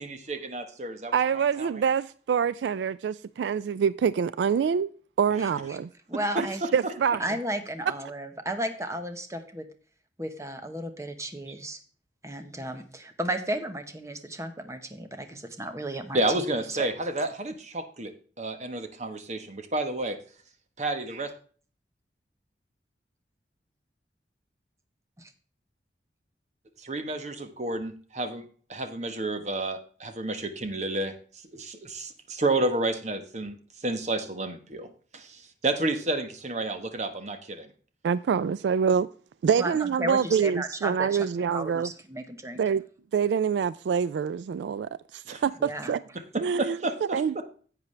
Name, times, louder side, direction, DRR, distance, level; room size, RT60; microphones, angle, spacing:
voice 1, 0.0-1.8 6.1-6.9 16.1-20.2 20.8-21.3 26.8-31.1 31.5-37.7 45.3-45.4 46.3-47.4, right 2 dB, 40° right, 1.1 m, -31 dB
voice 2, 1.1-4.9 5.2-5.9 6.4-6.5 6.7-7.2 38.0-39.1 39.4-41.9 42.6-42.8 43.1-46.0 46.4-46.8 47.1-47.4, right 7 dB, 80° right, 0.3 m, -26 dB
voice 3, 5.4-5.8 6.1-6.6 7.2-9.6 10.2-11.8 12.2-16.9 25.2-25.3 39.6-41.3 41.5-42.6 45.6-45.9, right 1 dB, 15° right, 1.0 m, -34 dB
10.5 x 8.2 x 3.2 m
head